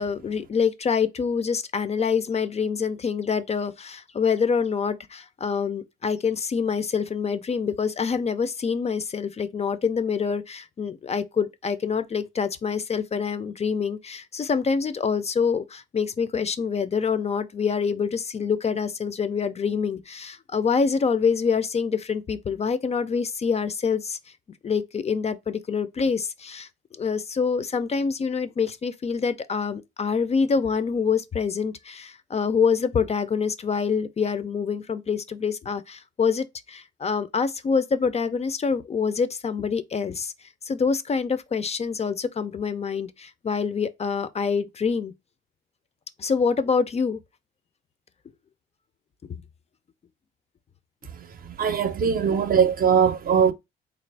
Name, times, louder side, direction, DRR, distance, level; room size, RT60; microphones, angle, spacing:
voice 1, 0.0-24.2 24.6-26.7 27.0-40.3 40.6-45.1 46.2-47.2 49.3-49.4 52.0-52.1, left 5 dB, 35° left, 0.4 m, -26 dB
voice 2, 51.4-53.5, right 7 dB, 45° right, 0.6 m, -21 dB
3.7 x 2.5 x 3.3 m
cardioid pair, 90°, 20 cm